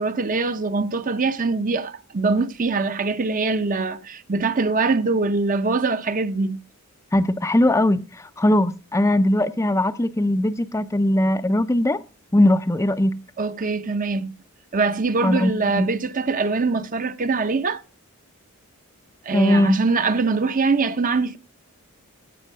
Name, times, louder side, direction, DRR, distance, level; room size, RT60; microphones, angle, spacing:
voice 1, 0.0-6.6 13.4-14.4 14.7-17.8 19.2-21.4, right 4 dB, 35° right, 0.7 m, -23 dB
voice 2, 7.1-12.0 12.3-13.1 15.2-15.9 19.3-19.8, left 1 dB, 15° left, 0.4 m, -20 dB
15.5 x 5.5 x 5.4 m
head